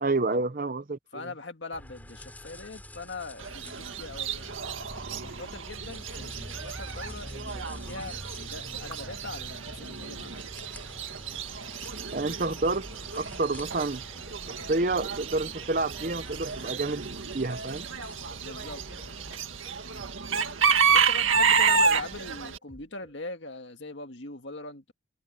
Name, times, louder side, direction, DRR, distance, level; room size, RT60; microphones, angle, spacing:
voice 1, 0.0-1.3 12.1-12.9 13.1-14.0 14.5-17.1 17.3-17.9 19.9-20.1, right 2 dB, 45° right, 0.8 m, -29 dB
voice 2, 1.1-4.6 5.1-10.4 18.4-19.2 20.9-24.9, left 3 dB, 65° left, 2.0 m, -41 dB
sound 1, 1.7-19.4, equal, 10° left, 3.6 m, -46 dB
Chicken rooster / Bird, 3.4-22.6, right 5 dB, 90° right, 2.0 m, -30 dB
sound 2, 12.9-23.2, equal, 25° right, 6.8 m, -55 dB
head